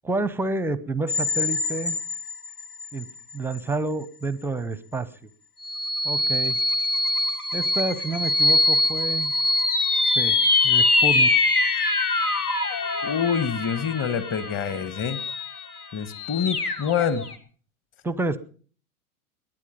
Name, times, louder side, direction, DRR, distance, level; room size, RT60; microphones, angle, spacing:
voice 1, 0.0-2.0 2.9-3.1 3.3-5.1 6.0-6.6 7.5-9.3 10.2-10.4 10.6-11.6 18.0-18.4, right 3 dB, 5° right, 18 dB, 0.6 m, -29 dB
sound 1, 1.1-3.0 3.5-3.6 5.6-17.3, left 2 dB, 90° left, 1.7 m, -24 dB
voice 2, 13.0-15.2 15.9-17.3, left 7 dB, 30° left, 14 dB, 1.4 m, -26 dB
21.0 x 9.7 x 5.2 m, 0.42 s
figure-of-eight pair, 100°, 43 cm